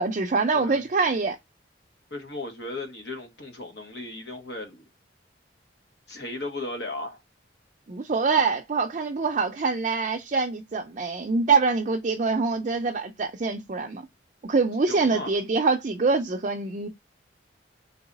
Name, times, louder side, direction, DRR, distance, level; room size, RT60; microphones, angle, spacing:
voice 1, 0.0-1.4 7.9-14.1 14.4-16.9, right 4 dB, 40° right, 0.4 m, -25 dB
voice 2, 0.5-0.8 2.1-4.8 6.1-7.2 14.9-15.3, left 2 dB, 65° left, 1.2 m, -36 dB
3.9 x 2.8 x 3.9 m
head